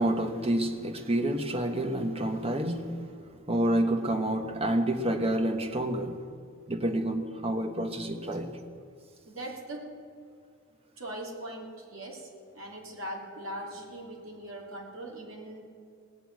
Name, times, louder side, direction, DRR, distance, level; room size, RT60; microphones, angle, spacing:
voice 1, 0.0-3.0 3.5-6.3 6.7-8.5, right 1 dB, 25° right, 6 dB, 1.1 m, -28 dB
voice 2, 9.3-9.9 11.0-12.3 12.5-15.6, right 1 dB, 65° right, 0 dB, 2.8 m, -40 dB
18.0 x 6.9 x 9.4 m, 2.2 s
head